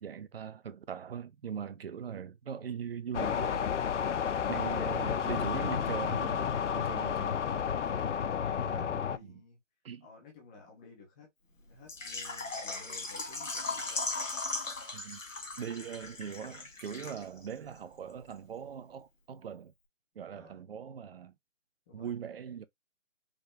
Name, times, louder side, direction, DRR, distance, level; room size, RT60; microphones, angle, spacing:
voice 1, 0.0-3.8 4.5-7.5 8.6-9.4 9.8-10.1 14.9-15.2 15.6-19.7 20.2-21.3 21.9-22.6, right 8 dB, 50° right, 0.8 m, -41 dB
sound 1, 3.1-9.2, left 7 dB, 65° left, 0.6 m, -31 dB
voice 2, 7.7-9.6 10.0-14.2 20.3-20.6 21.9-22.3, left 4 dB, 5° left, 0.6 m, -55 dB
Water / Liquid, 11.9-17.5 17.8-17.9 18.3-18.4, left 3 dB, 85° left, 2.3 m, -38 dB
5.4 x 2.8 x 3.4 m
figure-of-eight pair, 150°, 38 cm